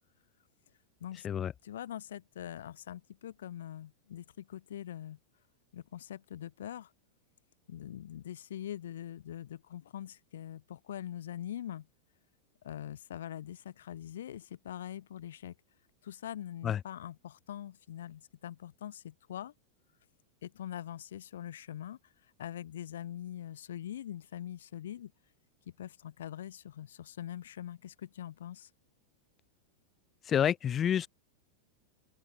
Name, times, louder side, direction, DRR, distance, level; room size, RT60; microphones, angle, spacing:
voice 1, 1.6-5.2 5.7-6.9 7.7-11.9 12.6-15.5 16.0-19.5 20.4-25.1 25.8-28.7, left 11 dB, 60° left, 5.2 m, -43 dB
voice 2, 30.2-31.1, left 9 dB, 25° left, 4.1 m, -28 dB
open air
figure-of-eight pair, 90°, 0 cm